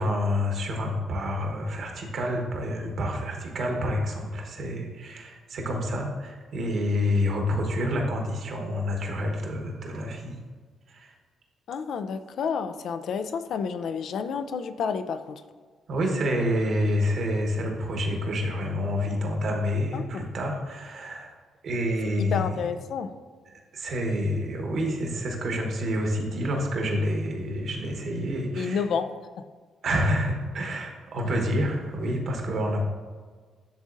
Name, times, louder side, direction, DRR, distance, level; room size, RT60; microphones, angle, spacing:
voice 1, 0.0-10.4 10.9-11.1 15.9-21.3 21.6-22.6 23.7-28.8 29.8-32.8, equal, 60° right, 2 dB, 1.2 m, -28 dB
voice 2, 11.7-15.4 19.9-20.3 22.3-23.1 28.6-29.1 29.4-29.5 31.3-31.4, left 6 dB, 70° left, 10 dB, 0.4 m, -30 dB
10.0 x 3.7 x 2.6 m, 1.5 s
cardioid pair, 90°, 0 cm